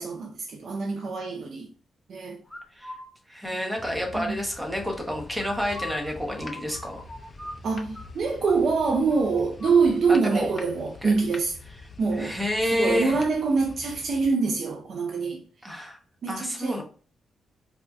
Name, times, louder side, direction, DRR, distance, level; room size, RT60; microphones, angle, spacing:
voice 1, 0.0-1.7 2.1-2.4 3.5-3.8 4.1-4.4 7.6-11.6 12.0-15.8 16.2-16.8, right 4 dB, 60° right, 0.4 m, -25 dB
sound 1, 2.5-3.1 5.4-8.1 8.4-8.6 8.8-9.8, left 2 dB, 10° left, 1.1 m, -41 dB
voice 2, 3.3-7.0 10.1-10.5 11.0-11.1 12.2-13.2 15.6-16.0 16.3-16.8, equal, 5° right, 0.8 m, -29 dB
sound 2, 3.8-14.3, left 3 dB, 35° left, 0.4 m, -45 dB
4.2 x 2.5 x 2.3 m
cardioid pair, 110°, 0 cm